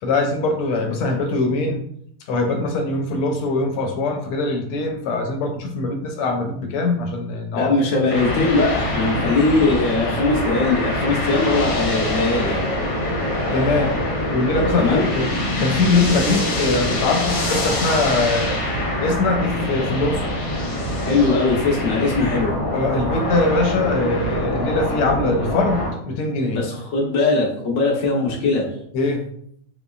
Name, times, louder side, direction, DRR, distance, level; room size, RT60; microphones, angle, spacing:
voice 1, 0.0-1.8 2.3-7.8 13.5-14.0 14.3-15.3 15.6-18.6 19.0-20.3 22.7-26.6 28.9-29.3, left 3 dB, 80° left, 3 dB, 1.5 m, -22 dB
voice 2, 7.5-12.6 14.8-15.1 21.0-22.5 26.5-28.6, left 3 dB, 50° left, -2 dB, 1.0 m, -20 dB
sound 1, 8.1-25.9, left 1 dB, 65° left, 1.4 m, -24 dB
4.0 x 3.6 x 2.3 m, 0.68 s
omnidirectional pair, 2.4 m